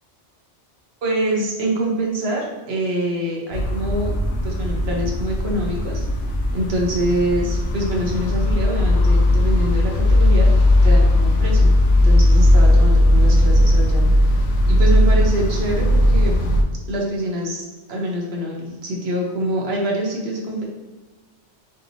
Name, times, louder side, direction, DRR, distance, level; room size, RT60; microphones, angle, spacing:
voice 1, 1.0-4.1 4.4-6.0 6.5-10.6 10.8-11.7 12.0-14.4 14.7-16.3 16.9-20.7, right 1 dB, 60° right, -1 dB, 1.1 m, -25 dB
sound 1, 3.5-16.6, left 1 dB, 75° left, 0.9 m, -17 dB
5.0 x 2.9 x 2.7 m, 1.2 s
omnidirectional pair, 1.2 m